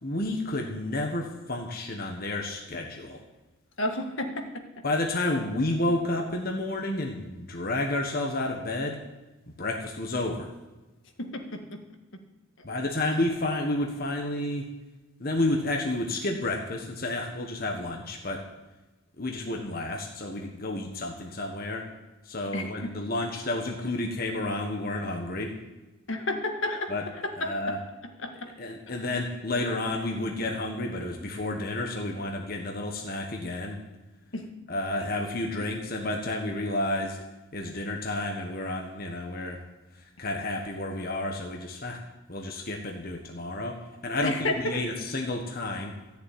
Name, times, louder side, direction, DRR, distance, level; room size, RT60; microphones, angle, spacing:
voice 1, 0.0-3.2 4.8-9.0 9.6-10.5 12.6-14.7 15.2-18.4 19.2-21.9 22.2-25.5 26.9-27.1 27.4-27.8 28.6-33.8 34.7-37.2 37.5-39.6 39.9-42.0 42.3-46.0, left 2 dB, 45° left, 2 dB, 1.4 m, -31 dB
voice 2, 3.8-4.8 11.2-11.8 12.1-12.2 22.5-22.9 26.1-26.9 27.2-27.5 28.2-28.5 34.3-34.5 35.0-35.1 44.2-44.8, left 1 dB, 65° left, 4 dB, 1.7 m, -31 dB
14.5 x 7.1 x 9.3 m, 1.1 s
head